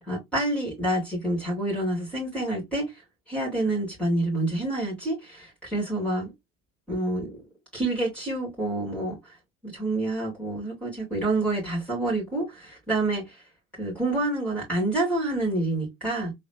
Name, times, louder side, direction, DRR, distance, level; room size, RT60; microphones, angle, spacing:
voice 1, 0.1-3.0 3.3-6.3 6.9-7.4 7.7-9.4 9.6-13.4 13.8-16.3, right 2 dB, 5° left, 3.2 m, -28 dB
4.2 x 3.6 x 2.4 m
hypercardioid pair, 70°, 38 cm